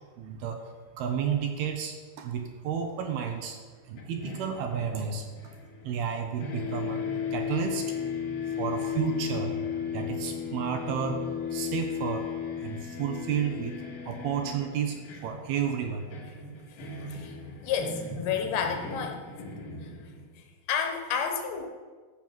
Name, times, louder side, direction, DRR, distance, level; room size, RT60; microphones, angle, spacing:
voice 1, 0.2-3.6 3.9-5.5 5.8-8.0 8.4-9.6 9.9-11.2 11.5-12.3 12.6-16.1, right 7 dB, 70° right, 5 dB, 2.7 m, -32 dB
sound 1, 4.0-6.1 6.4-20.4, left 6 dB, 55° left, 3.2 m, -36 dB
voice 2, 17.6-19.2 20.7-21.7, left 7 dB, 75° left, 4 dB, 3.3 m, -30 dB
14.0 x 6.0 x 7.5 m, 1.5 s
omnidirectional pair, 5.0 m